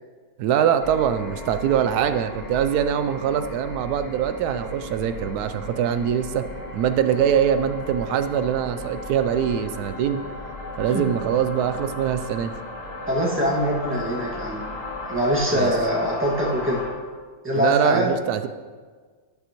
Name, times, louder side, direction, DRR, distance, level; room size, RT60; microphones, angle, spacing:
voice 1, 0.4-6.4 6.7-10.2 10.8-12.5 15.5-15.7 17.6-18.5, right 9 dB, 85° right, 10 dB, 1.1 m, -23 dB
sound 1, 0.8-16.9, left 2 dB, 25° left, 2.2 m, -36 dB
voice 2, 13.1-14.6 15.1-16.8 17.4-18.1, equal, 10° right, -4 dB, 1.8 m, -23 dB
11.0 x 10.5 x 3.0 m, 1.5 s
omnidirectional pair, 1.6 m